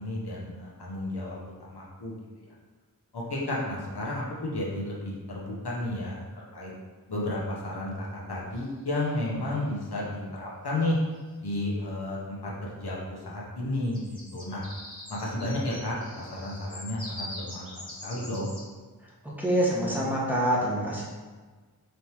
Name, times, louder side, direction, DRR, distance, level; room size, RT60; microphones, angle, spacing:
voice 1, 0.0-2.5 3.1-6.7 7.1-11.0 11.4-14.6 15.1-18.5, left 1 dB, 90° left, -5 dB, 0.9 m, -32 dB
sound 1, 8.5-9.1 10.8-10.9 11.1-11.5 13.7-18.7, left 1 dB, 15° left, 1.4 m, -43 dB
voice 2, 19.4-21.0, right 1 dB, 5° right, -6 dB, 1.1 m, -25 dB
4.3 x 3.2 x 2.9 m, 1.4 s
wide cardioid pair, 45°, 38 cm